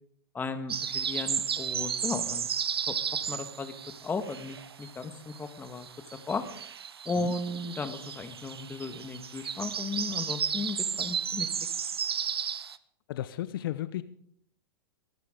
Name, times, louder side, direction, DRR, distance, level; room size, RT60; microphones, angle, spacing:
voice 1, 0.3-2.5 2.9-3.0 3.3-3.7 4.0-5.9 6.3-6.4 7.0-11.5, left 3 dB, 15° left, 9 dB, 1.5 m, -35 dB
sound 1, 0.7-5.0 5.3-12.8, right 7 dB, 90° right, 0.7 m, -33 dB
voice 2, 13.1-14.0, left 13 dB, 65° left, 15 dB, 0.7 m, -34 dB
22.0 x 12.0 x 3.8 m, 0.66 s
hypercardioid pair, 115°, 13 cm